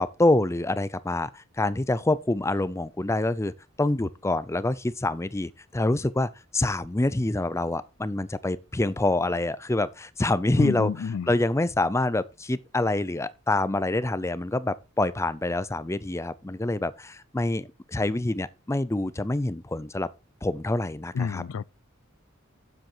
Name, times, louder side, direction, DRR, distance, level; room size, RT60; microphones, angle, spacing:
voice 1, 0.0-3.5 3.8-10.9 11.3-20.1 20.4-21.4, left 2 dB, 15° left, 0.5 m, -26 dB
voice 2, 10.6-11.3 21.1-21.6, left 6 dB, 75° left, 0.4 m, -29 dB
9.0 x 7.5 x 4.4 m
head